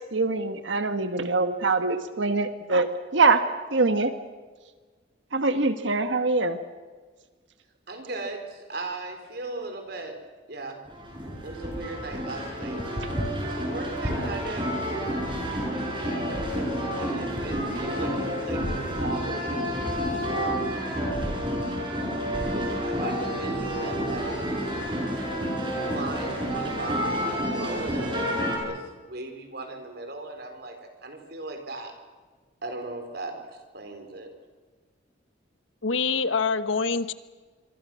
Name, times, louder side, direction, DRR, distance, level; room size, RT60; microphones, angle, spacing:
voice 1, 0.1-2.9 3.1-3.4 3.7-4.1 5.3-6.6, right 3 dB, 75° right, 9 dB, 1.4 m, -23 dB
voice 2, 7.9-10.2 10.5-10.8 11.4-12.9 13.4-14.7 15.7-20.3 22.4-24.4 25.6-31.9 32.6-33.4 33.7-34.3, right 2 dB, 55° right, 6 dB, 4.3 m, -37 dB
sound 1, 10.9-28.6, equal, 25° right, 6.7 m, -29 dB
voice 3, 35.8-37.1, left 4 dB, 90° left, 13 dB, 1.2 m, -25 dB
26.0 x 23.5 x 6.3 m, 1.4 s
head